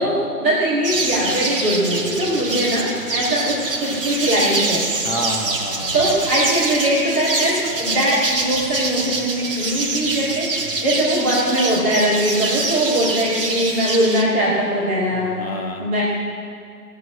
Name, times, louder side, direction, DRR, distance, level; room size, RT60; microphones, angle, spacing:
voice 1, 0.0-4.9 5.9-10.5 10.8-15.4 15.8-16.0, equal, 10° right, -10 dB, 1.2 m, -21 dB
sound 1, 0.8-14.2, right 3 dB, 35° right, 1.4 m, -25 dB
voice 2, 5.0-6.2 15.1-15.9, left 1 dB, 40° left, 1 dB, 1.4 m, -29 dB
17.0 x 7.6 x 7.3 m, 2.3 s
figure-of-eight pair, 155°, 47 cm